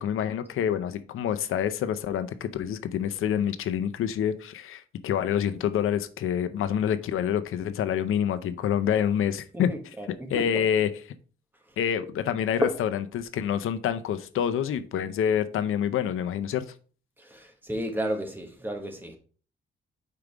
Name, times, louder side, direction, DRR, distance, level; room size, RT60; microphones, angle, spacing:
voice 1, 0.0-9.7 10.3-10.9 11.8-16.7, left 9 dB, 85° left, 0.6 m, -27 dB
voice 2, 9.5-10.1 10.3-10.5 12.6-12.7 17.2-19.2, equal, 10° right, 1.2 m, -31 dB
5.2 x 4.6 x 4.9 m
wide cardioid pair, 145°, 21 cm